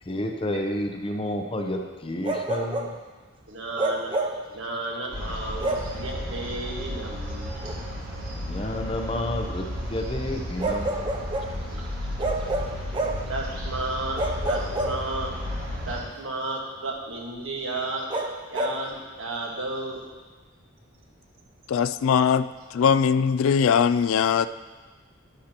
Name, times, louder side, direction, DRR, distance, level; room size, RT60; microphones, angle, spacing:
voice 1, 0.0-3.0 5.6-5.7 8.3-11.2, left 1 dB, 25° left, 0.7 m, -30 dB
Bark, 2.2-3.0 3.8-4.5 5.6-6.0 7.6-7.8 10.6-11.6 12.2-13.3 14.2-15.4 18.1-18.8, right 1 dB, 25° right, 0.5 m, -28 dB
voice 2, 3.5-4.2 4.5-7.5 11.7-11.9 13.3-15.3 15.9-18.1 18.5-20.0, right 2 dB, 65° right, 1.6 m, -33 dB
sound 1, 5.1-16.0, left 1 dB, 80° right, 2.6 m, -33 dB
voice 3, 21.7-24.5, left 7 dB, 70° left, 0.3 m, -21 dB
11.5 x 10.0 x 3.0 m
head